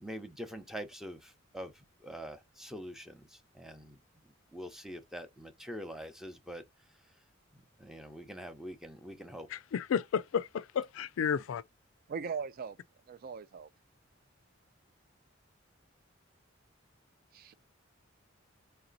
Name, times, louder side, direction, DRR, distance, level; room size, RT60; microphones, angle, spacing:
voice 1, 0.0-4.0 4.5-6.6 7.5-9.5, equal, ahead, 0.7 m, -44 dB
voice 2, 9.5-11.6, left 7 dB, 75° left, 0.3 m, -32 dB
voice 3, 12.1-12.8 13.1-13.7 17.3-17.5, right 6 dB, 50° right, 0.3 m, -39 dB
3.3 x 2.8 x 3.9 m
head